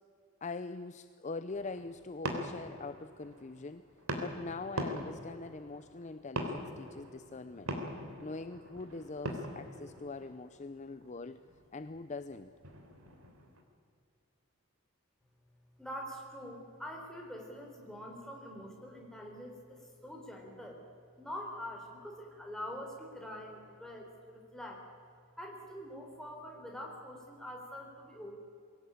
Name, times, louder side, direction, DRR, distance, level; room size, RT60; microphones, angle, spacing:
voice 1, 0.4-3.8 4.2-7.7 8.2-11.4 11.7-12.5, left 3 dB, 30° left, 12 dB, 0.5 m, -43 dB
sound 1, 1.5-13.6, equal, 75° right, 3.4 m, -43 dB
voice 2, 15.8-20.8 21.2-24.9 25.4-28.4, equal, ahead, 0 dB, 3.8 m, -45 dB
23.0 x 17.0 x 8.8 m, 2.5 s
head